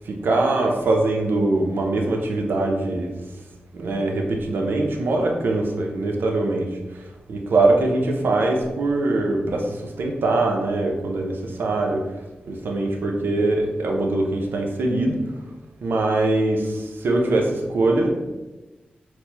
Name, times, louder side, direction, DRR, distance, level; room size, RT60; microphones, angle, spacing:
voice 1, 0.1-3.1 3.7-6.7 7.3-12.0 12.5-15.2 15.8-18.1, right 2 dB, 80° right, 1 dB, 0.5 m, -22 dB
4.2 x 2.0 x 2.8 m, 1.1 s
cardioid pair, 45°, 4 cm